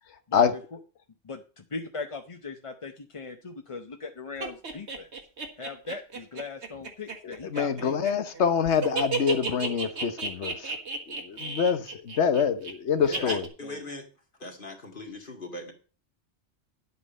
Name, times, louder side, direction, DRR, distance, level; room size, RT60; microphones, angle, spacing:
voice 1, 1.3-5.1 5.6-8.0 13.0-13.3 13.6-13.8, left 4 dB, 35° left, 5 dB, 0.7 m, -39 dB
sound 1, 4.4-8.4 8.7-12.7 13.1-13.5, right 4 dB, 90° right, 2.0 m, -32 dB
voice 2, 7.2-10.7 11.1-13.4, left 7 dB, 90° left, 11 dB, 1.3 m, -26 dB
voice 3, 13.2-14.1 14.4-15.7, left 2 dB, 50° left, 3 dB, 2.3 m, -40 dB
10.5 x 8.4 x 5.4 m, 0.37 s
omnidirectional pair, 1.1 m